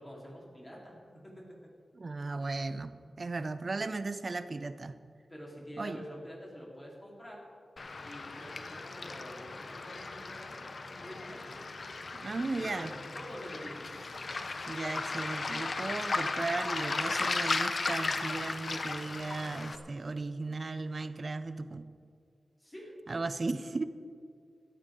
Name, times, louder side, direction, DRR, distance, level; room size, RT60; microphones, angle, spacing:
voice 1, 0.0-1.5 5.3-7.4 8.0-11.5 12.4-13.9 22.6-22.9, equal, 15° left, -4 dB, 3.9 m, -47 dB
voice 2, 1.9-5.0 5.8-6.0 12.1-12.9 14.7-21.8 23.1-23.8, right 3 dB, 45° right, 12 dB, 0.7 m, -36 dB
Waves surf, 7.8-19.8, left 3 dB, 50° left, 0.9 m, -36 dB
16.0 x 14.5 x 3.8 m, 2.3 s
wide cardioid pair, 115°, 0 cm